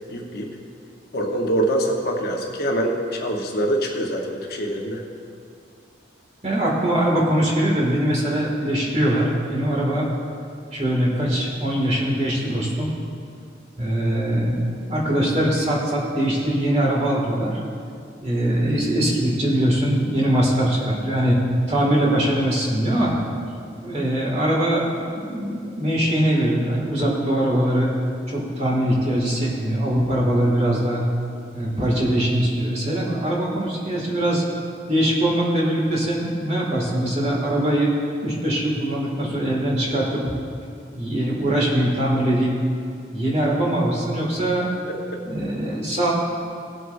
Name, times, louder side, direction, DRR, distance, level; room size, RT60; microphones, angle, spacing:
voice 1, 0.1-0.5 1.1-5.0 44.9-45.2, right 1 dB, 55° left, 0 dB, 1.1 m, -24 dB
voice 2, 6.4-10.1 10.7-12.9 13.8-17.6 18.2-21.4 21.7-23.1 23.8-27.9 28.3-31.0 31.5-34.4 34.9-37.9 38.2-40.2 40.9-42.5 43.1-44.7 45.2-46.1, right 1 dB, 35° right, -4 dB, 2.2 m, -22 dB
18.5 x 7.9 x 2.7 m, 2.4 s
head